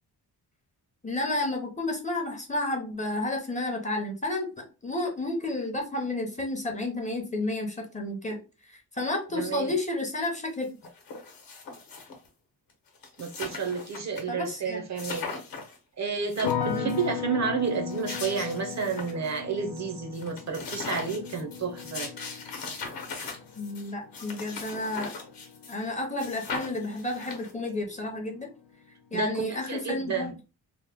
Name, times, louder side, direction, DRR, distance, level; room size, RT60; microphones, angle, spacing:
voice 1, 1.0-8.4 8.7-10.7 14.3-14.8 16.7-16.9 23.6-25.1 25.7-28.5 29.1-30.3, left 2 dB, 20° left, 0.5 m, -31 dB
voice 2, 9.3-9.7 13.2-15.3 16.0-22.1 29.1-29.3 29.7-30.3, right 6 dB, 45° right, 0.5 m, -31 dB
sound 1, 10.2-10.3 10.6-12.3 12.7-12.8 13.0-14.2 14.5-14.6 15.0-15.8 16.2-17.1 17.7-19.4 19.8-19.9 20.1-25.9 26.2-27.7, left 4 dB, 55° left, 0.9 m, -39 dB
sound 2, 16.4-27.5 27.8-28.5, left 7 dB, 80° left, 0.6 m, -37 dB
2.9 x 2.0 x 3.3 m
wide cardioid pair, 170°, 40 cm